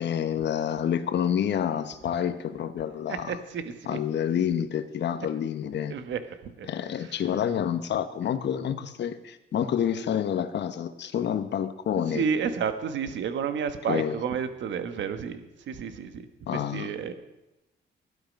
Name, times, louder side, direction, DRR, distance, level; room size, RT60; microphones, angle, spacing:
voice 1, 0.0-3.3 3.9-6.0 6.7-12.2 13.9-14.2 16.5-16.9, left 9 dB, 65° left, 11 dB, 1.1 m, -28 dB
voice 2, 3.1-4.0 5.9-6.7 6.9-7.2 12.1-17.1, right 6 dB, 70° right, 9 dB, 1.4 m, -31 dB
14.5 x 12.0 x 5.4 m, 0.95 s
cardioid pair, 90°, 20 cm